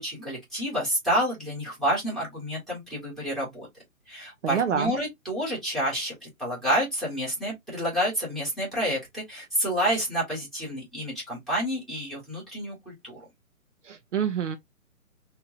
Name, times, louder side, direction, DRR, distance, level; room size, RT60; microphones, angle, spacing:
voice 1, 0.0-3.7 4.1-13.2, equal, ahead, 1.8 m, -29 dB
voice 2, 4.4-4.9 13.8-14.6, right 8 dB, 55° right, 0.6 m, -27 dB
4.4 x 2.7 x 2.7 m
figure-of-eight pair, 140°, 42 cm